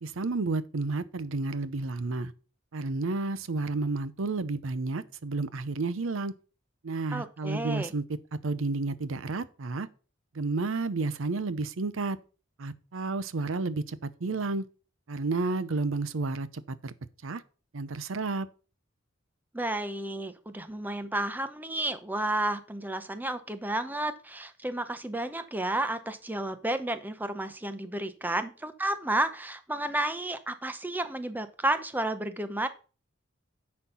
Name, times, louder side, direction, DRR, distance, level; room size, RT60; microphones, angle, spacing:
voice 1, 0.0-2.3 2.7-6.3 6.8-8.0 8.4-9.9 10.3-12.2 12.6-14.7 15.1-16.9 17.2-17.4 17.7-18.5, right 3 dB, 75° right, 0.7 m, -31 dB
voice 2, 7.1-7.9 19.5-32.7, right 1 dB, 10° right, 0.7 m, -32 dB
10.0 x 4.4 x 5.6 m
head